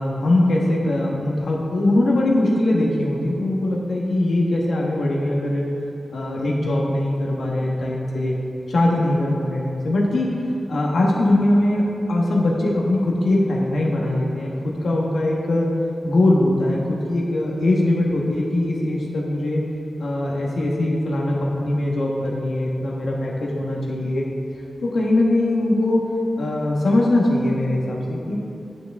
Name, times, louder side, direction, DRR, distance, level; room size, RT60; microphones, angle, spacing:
voice 1, 0.0-5.6 6.1-8.3 8.7-10.3 10.7-15.7 16.0-19.6 20.0-24.2 24.8-26.0 26.4-28.3, left 1 dB, 85° left, -3 dB, 1.3 m, -21 dB
8.8 x 8.3 x 3.6 m, 2.7 s
wide cardioid pair, 130°, 0 cm